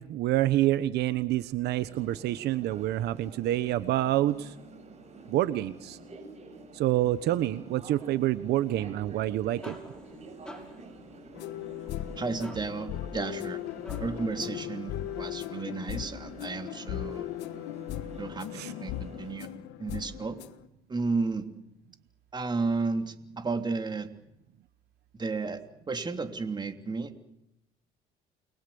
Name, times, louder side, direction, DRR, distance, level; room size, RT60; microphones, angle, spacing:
voice 1, 0.0-4.5 5.3-6.0 6.7-9.8 18.5-18.7, right 14 dB, 75° right, 14 dB, 1.1 m, -27 dB
sound 1, 1.7-19.3, right 3 dB, 40° right, 6.7 m, -49 dB
sound 2, 9.1-14.4, equal, 5° left, 6.5 m, -49 dB
sound 3, 11.3-20.7, left 12 dB, 90° left, 1.5 m, -38 dB
voice 2, 12.2-13.6 14.0-17.3 18.2-18.5 18.8-19.5 19.8-20.4 20.9-21.5 22.3-24.1 25.2-25.6 25.9-27.2, right 3 dB, 25° right, 7 dB, 3.1 m, -32 dB
29.5 x 22.5 x 7.1 m, 0.87 s
cardioid pair, 110°, 17 cm